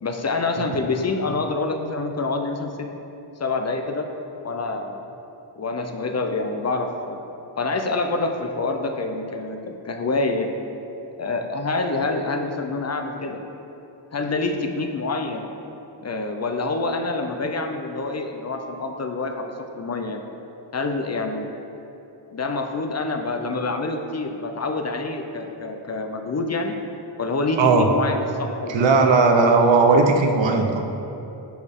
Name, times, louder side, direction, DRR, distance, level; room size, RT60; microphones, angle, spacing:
voice 1, 0.0-2.9 3.4-4.1 4.4-5.0 5.6-7.2 7.6-10.5 11.2-13.4 14.1-15.4 16.0-20.2 20.7-21.5 22.3-26.7 27.2-29.1, left 3 dB, 35° left, 4 dB, 0.5 m, -26 dB
voice 2, 28.7-30.8, right 4 dB, 70° right, 4 dB, 0.9 m, -17 dB
10.5 x 6.4 x 3.6 m, 2.9 s
wide cardioid pair, 150°, 46 cm